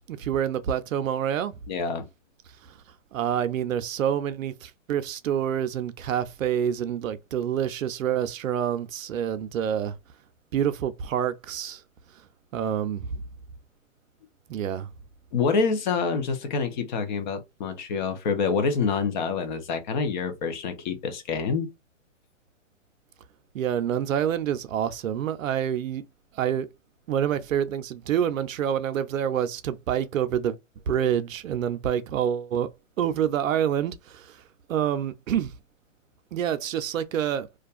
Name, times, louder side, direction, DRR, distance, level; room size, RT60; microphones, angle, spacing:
voice 1, 0.1-1.6 3.1-9.9 10.5-11.8 12.5-13.2 14.5-14.9 23.5-26.0 26.3-26.7 27.1-30.6 30.9-32.7 33.0-34.4 34.7-35.5 36.3-37.5, right 9 dB, 85° right, 0.6 m, -27 dB
voice 2, 1.7-2.1 15.3-21.7, left 5 dB, 35° left, 0.6 m, -27 dB
2.5 x 2.3 x 2.4 m
hypercardioid pair, 145°, 38 cm